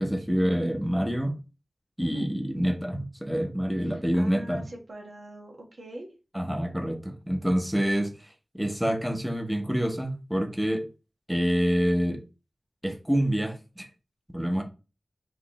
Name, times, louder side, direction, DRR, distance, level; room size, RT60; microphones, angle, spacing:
voice 1, 0.0-1.4 2.0-4.6 6.3-10.8 11.3-12.2 12.8-13.9 14.3-14.6, equal, 5° right, 0.8 m, -27 dB
voice 2, 3.8-6.1, right 1 dB, 90° right, 1.2 m, -44 dB
5.0 x 3.1 x 3.0 m
wide cardioid pair, 65°, 0 cm